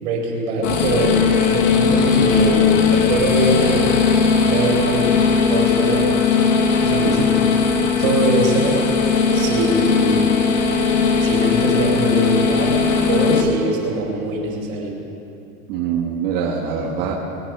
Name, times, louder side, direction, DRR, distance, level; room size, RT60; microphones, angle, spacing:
voice 1, 0.0-3.9 4.4-5.1 5.5-6.1 6.7-7.4 8.0-8.8 9.3-10.2 11.2-12.8 13.1-15.0, right 2 dB, 65° right, -1 dB, 4.9 m, -22 dB
sound 1, 0.6-13.4, left 5 dB, 60° left, 1.8 m, -18 dB
voice 2, 15.7-17.1, right 7 dB, 40° right, -3 dB, 1.5 m, -24 dB
22.5 x 9.6 x 5.9 m, 2.7 s
supercardioid pair, 170°, 43 cm